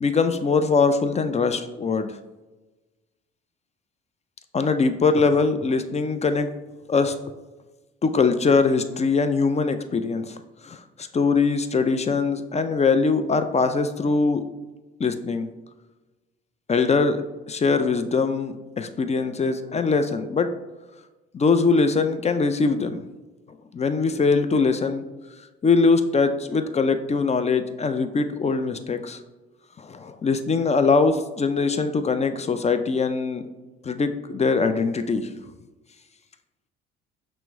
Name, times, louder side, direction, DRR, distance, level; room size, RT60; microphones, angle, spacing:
voice 1, 0.0-2.1 4.5-6.5 6.9-7.2 8.0-10.4 10.6-14.4 15.0-15.5 16.7-17.2 17.5-20.5 21.3-23.0 23.7-25.0 25.6-29.2 29.8-33.4 33.8-35.3, left 4 dB, 25° left, 9 dB, 0.4 m, -22 dB
5.9 x 2.1 x 3.5 m, 1.2 s
hypercardioid pair, 60°, 30 cm